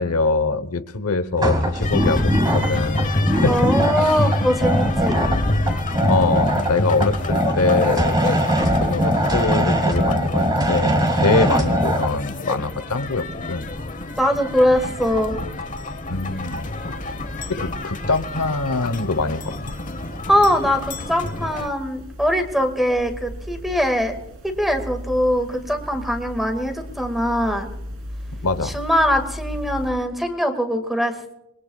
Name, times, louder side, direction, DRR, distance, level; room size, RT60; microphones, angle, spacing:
voice 1, 0.0-3.6 4.0-4.3 6.1-8.2 8.7-13.7 16.1-17.0 17.5-19.5 20.1-20.2 28.4-28.8, left 3 dB, 80° left, 11 dB, 1.0 m, -24 dB
sound 1, 1.4-12.1, equal, 20° right, 2.1 m, -22 dB
sound 2, 1.8-21.7, left 1 dB, 35° left, 1.0 m, -27 dB
voice 2, 3.5-5.2 11.3-11.6 14.2-15.4 20.3-24.1 24.4-27.7 28.6-31.3, equal, ahead, 6 dB, 1.9 m, -22 dB
sound 3, 16.1-29.9, equal, 60° right, 3.4 m, -37 dB
27.0 x 21.5 x 2.4 m, 0.82 s
head